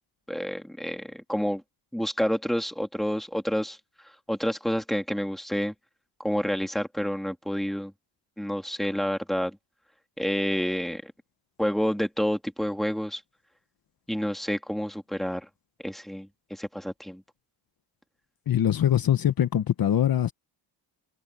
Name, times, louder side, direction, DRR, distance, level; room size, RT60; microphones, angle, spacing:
voice 1, 0.3-1.6 1.9-3.8 4.3-5.7 6.2-7.9 8.4-9.6 10.2-11.1 11.6-13.2 14.1-15.5 15.8-17.2, equal, ahead, 2.4 m, -29 dB
voice 2, 18.5-20.3, left 10 dB, 50° left, 1.1 m, -23 dB
cardioid pair, 150°, 46 cm